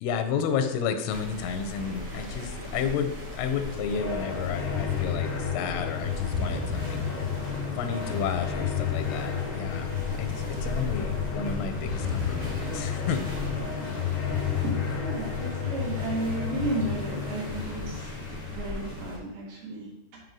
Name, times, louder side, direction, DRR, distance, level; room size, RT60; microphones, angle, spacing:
voice 1, 0.0-7.3 7.8-9.9 10.1-13.2, left 7 dB, 90° left, 7 dB, 3.2 m, -32 dB
sound 1, 1.1-19.2, left 1 dB, 40° right, 1.5 m, -37 dB
sound 2, 3.3-19.1, left 7 dB, 75° left, 2.1 m, -32 dB
voice 2, 14.6-18.1 18.5-19.9 20.1-20.2, right 2 dB, 60° right, -4 dB, 3.5 m, -33 dB
9.4 x 4.8 x 3.8 m, 0.91 s
omnidirectional pair, 5.4 m